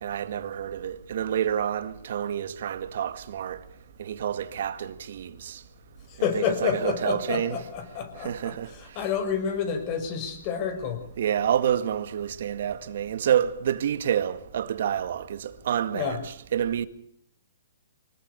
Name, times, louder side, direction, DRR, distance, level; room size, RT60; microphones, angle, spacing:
voice 1, 0.0-3.6 4.0-5.6 6.3-7.6 8.2-8.7 11.2-16.9, right 9 dB, 60° right, 2.0 m, -28 dB
voice 2, 6.1-11.0 15.9-16.2, left 7 dB, 35° left, 6.2 m, -29 dB
25.0 x 20.0 x 6.9 m
hypercardioid pair, 145°, 0 cm